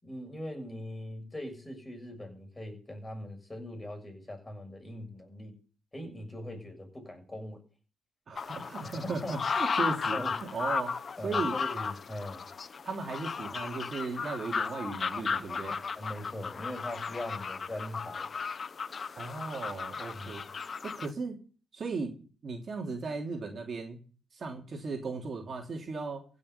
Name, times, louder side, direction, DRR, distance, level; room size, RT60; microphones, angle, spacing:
voice 1, 0.0-5.5 5.9-7.6 8.8-9.3 10.1-10.3 11.2-12.4 16.0-18.3 20.1-20.3, left 1 dB, 15° left, 7.0 m, -41 dB
voice 2, 8.3-11.0 11.2-11.6 12.8-15.8 19.2-20.4 20.8-21.4 21.7-22.2 22.4-24.0 24.3-26.2, right 4 dB, 45° right, 3.2 m, -36 dB
sound 1, 8.4-21.1, left 5 dB, 40° left, 0.7 m, -35 dB
16.0 x 6.9 x 8.2 m
cardioid pair, 90°, 0 cm